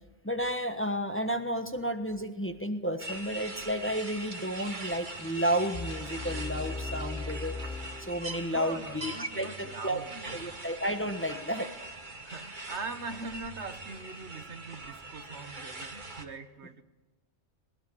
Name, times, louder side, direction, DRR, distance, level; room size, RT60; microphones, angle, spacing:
voice 1, 0.2-7.6 8.0-10.0 10.3-11.7, equal, 10° left, 7 dB, 1.4 m, -32 dB
sound 1, 3.0-16.3, right 2 dB, 45° right, 2.0 m, -42 dB
sound 2, 5.7-8.8, left 3 dB, 75° left, 3.8 m, -38 dB
voice 2, 8.4-10.5 12.2-16.8, right 4 dB, 70° right, 10 dB, 1.7 m, -42 dB
20.0 x 19.0 x 9.8 m, 1.1 s
omnidirectional pair, 1.2 m